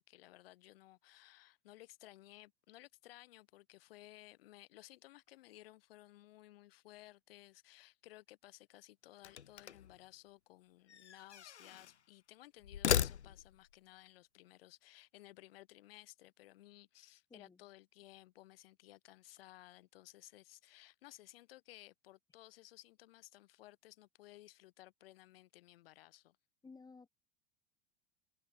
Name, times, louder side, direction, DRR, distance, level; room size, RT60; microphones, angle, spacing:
voice 1, 0.1-26.4, left 16 dB, 60° left, 2.5 m, -58 dB
sound 1, 9.2-10.0 10.9-12.0 12.6-13.7, left 8 dB, 85° left, 0.6 m, -37 dB
voice 2, 26.6-27.1, left 4 dB, 10° left, 1.4 m, -55 dB
figure-of-eight pair, 85°, 33 cm